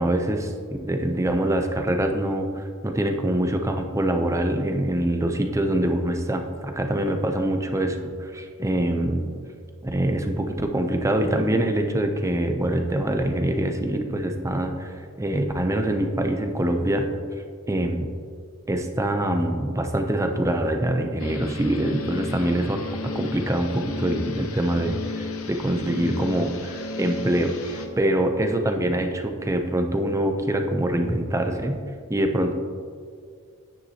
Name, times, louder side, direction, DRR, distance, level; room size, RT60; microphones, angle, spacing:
voice 1, 0.0-9.3 9.8-17.1 17.7-18.1 18.7-31.8 32.1-32.5, right 1 dB, 15° right, 5 dB, 0.6 m, -24 dB
sound 1, 21.2-27.9, left 3 dB, 70° left, 0.8 m, -34 dB
9.7 x 9.3 x 2.9 m, 2.1 s
head